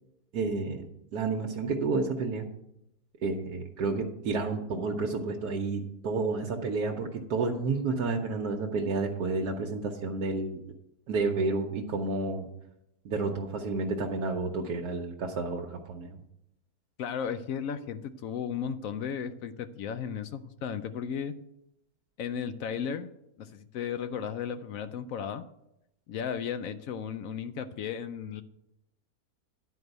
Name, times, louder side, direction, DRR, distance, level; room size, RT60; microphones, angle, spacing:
voice 1, 0.3-2.5 3.2-10.6 11.1-12.5 13.0-16.2, right 3 dB, 80° right, 1 dB, 1.3 m, -30 dB
voice 2, 17.0-21.3 22.2-23.1 23.4-25.4 26.1-28.4, left 7 dB, 70° left, 10 dB, 0.9 m, -35 dB
10.5 x 4.7 x 7.9 m, 0.83 s
omnidirectional pair, 1.7 m